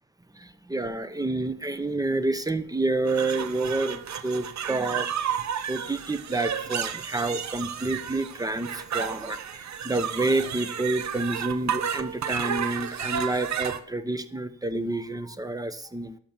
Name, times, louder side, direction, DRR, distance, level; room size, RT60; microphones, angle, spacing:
voice 1, 0.4-5.1 5.7-9.4 9.8-16.2, right 2 dB, 10° right, 11 dB, 0.9 m, -29 dB
sound 1, 3.1-13.8, right 8 dB, 70° right, 0.8 m, -32 dB
11.5 x 6.7 x 6.1 m, 0.64 s
cardioid pair, 65°, 30 cm